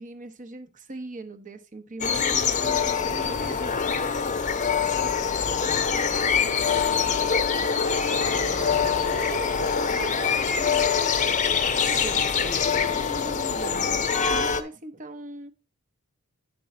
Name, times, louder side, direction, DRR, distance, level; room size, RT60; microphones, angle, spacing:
voice 1, 0.0-3.8 8.6-10.9 11.8-15.5, right 2 dB, 35° right, 0.9 m, -40 dB
sound 1, 2.0-14.6, left 6 dB, 35° left, 0.7 m, -24 dB
voice 2, 5.0-5.7 6.6-7.0 8.2-9.0, right 3 dB, 85° right, 1.3 m, -45 dB
9.3 x 5.3 x 4.3 m
head